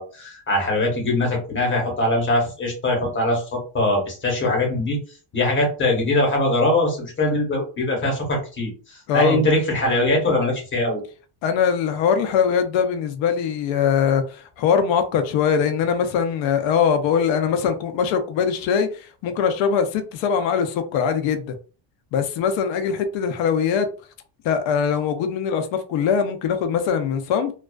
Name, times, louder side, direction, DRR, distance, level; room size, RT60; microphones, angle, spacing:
voice 1, 0.0-5.0 5.3-11.0, left 1 dB, 25° left, 0.9 m, -22 dB
voice 2, 9.1-9.4 11.4-21.6 22.1-23.9 24.4-27.5, left 7 dB, 65° left, 0.6 m, -22 dB
2.3 x 2.3 x 2.2 m
cardioid pair, 150°, 49 cm